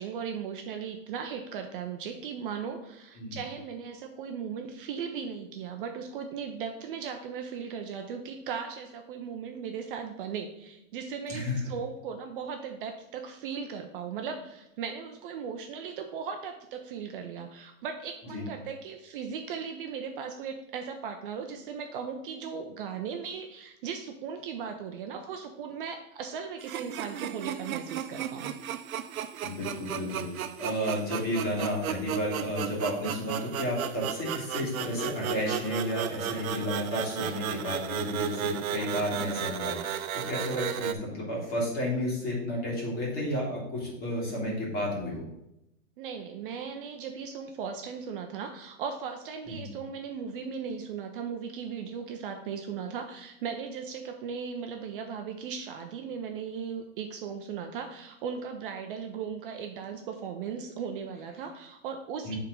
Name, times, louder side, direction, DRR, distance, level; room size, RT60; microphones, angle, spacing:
voice 1, 0.0-28.5 37.1-37.3 46.0-62.4, right 6 dB, 40° right, 4 dB, 0.6 m, -37 dB
voice 2, 11.3-11.6 18.3-18.5 29.4-45.2 49.5-49.7 62.2-62.4, left 1 dB, 20° left, -3 dB, 2.4 m, -32 dB
sound 1, 26.6-40.9, right 9 dB, 85° right, 0.7 m, -35 dB
7.4 x 3.7 x 5.2 m, 0.85 s
hypercardioid pair, 150°, 41 cm